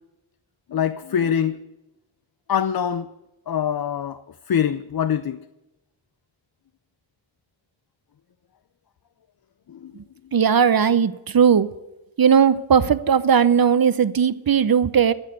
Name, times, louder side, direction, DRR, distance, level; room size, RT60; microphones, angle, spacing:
voice 1, 0.7-1.6 2.5-3.1 3.5-4.2 4.5-5.4 9.7-9.9, left 8 dB, 50° left, 0.6 m, -24 dB
voice 2, 10.3-11.7 12.2-15.1, right 7 dB, 45° right, 0.8 m, -17 dB
15.0 x 6.5 x 9.1 m
cardioid pair, 55°, 47 cm